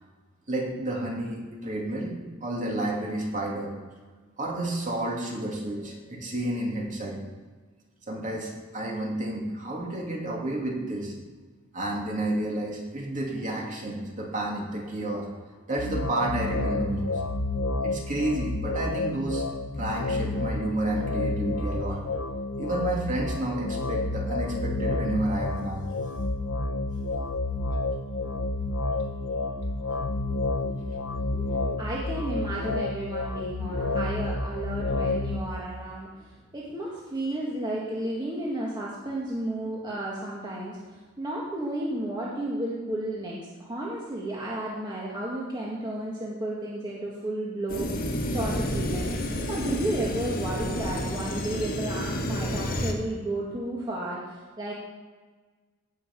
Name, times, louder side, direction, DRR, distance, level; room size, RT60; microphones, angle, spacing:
voice 1, 0.5-2.1 2.4-3.7 4.4-7.2 8.1-11.1 11.7-15.3 15.7-17.2 17.8-19.4 19.8-22.0 22.6-25.9 27.7-27.8 29.0-29.1 29.9-31.0 31.4-31.7, right 1 dB, 40° right, -1 dB, 2.6 m, -31 dB
sound 1, 15.8-35.4, left 2 dB, 85° left, 0.9 m, -30 dB
voice 2, 31.8-47.9 48.3-49.1 49.5-54.7, right 1 dB, 20° right, -5 dB, 1.8 m, -33 dB
sound 2, 47.7-52.9, left 1 dB, 45° left, 1.5 m, -30 dB
16.5 x 5.7 x 6.1 m, 1.4 s
head